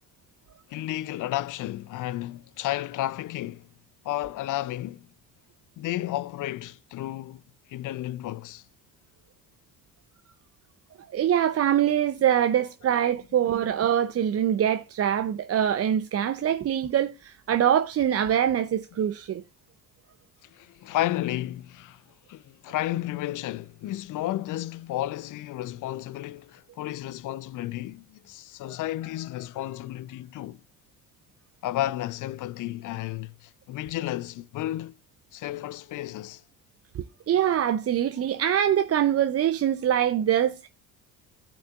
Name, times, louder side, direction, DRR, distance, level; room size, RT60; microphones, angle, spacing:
voice 1, 0.7-3.7 4.0-5.1 5.8-7.4 7.7-8.6 20.4-22.0 22.3-30.6 31.6-34.9 35.3-36.4, left 14 dB, 40° left, 0.5 m, -32 dB
voice 2, 11.1-19.4 36.9-40.7, right 10 dB, 30° right, 0.6 m, -24 dB
16.5 x 5.9 x 2.4 m
hypercardioid pair, 55°, 48 cm